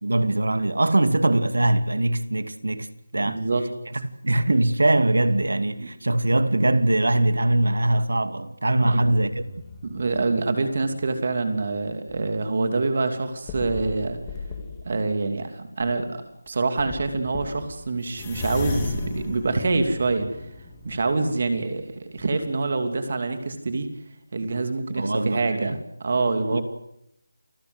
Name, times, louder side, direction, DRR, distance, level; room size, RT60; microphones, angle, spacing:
voice 1, 0.0-2.9 3.1-3.4 3.9-9.4 25.0-25.8 26.5-26.6, right 1 dB, 80° right, 2.4 m, -22 dB
voice 2, 3.2-3.7 5.8-5.9 8.8-9.0 9.8-14.2 14.8-20.3 20.8-23.9 24.3-26.6, right 3 dB, 30° right, 2.8 m, -26 dB
sound 1, 9.0-11.1 11.7-12.3 12.8-12.9 13.5-15.0 15.8-16.0 16.5-16.6 16.8-21.9 22.2-22.3, left 3 dB, 10° left, 2.4 m, -36 dB
29.5 x 20.0 x 8.0 m
figure-of-eight pair, 180°, 0 cm